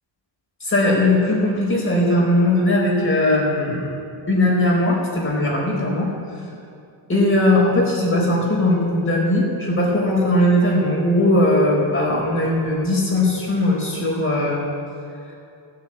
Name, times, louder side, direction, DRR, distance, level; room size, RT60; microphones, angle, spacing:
voice 1, 0.6-3.9 4.3-6.1 7.1-14.6, left 1 dB, 30° left, -3 dB, 4.6 m, -19 dB
17.0 x 7.3 x 8.9 m, 2.6 s
wide cardioid pair, 145°, 45 cm